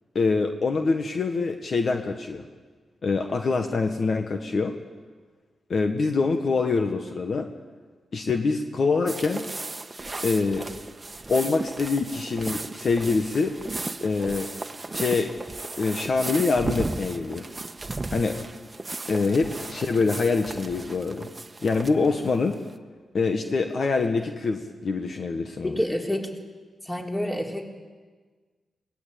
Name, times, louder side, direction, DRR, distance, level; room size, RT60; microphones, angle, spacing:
voice 1, 0.1-2.4 3.0-4.8 5.7-7.5 8.1-9.5 10.2-10.7 11.3-13.6 14.0-14.5 14.9-15.3 15.8-17.5 18.1-18.4 19.1-21.3 21.6-22.6 23.1-25.8, left 4 dB, 55° left, 5 dB, 1.6 m, -25 dB
sound 1, 9.1-22.7, right 2 dB, 30° right, 1.3 m, -35 dB
voice 2, 25.6-26.3 26.8-27.7, left 1 dB, 15° left, 1 dB, 3.8 m, -28 dB
21.5 x 19.0 x 8.6 m, 1.4 s
cardioid pair, 60°, 0 cm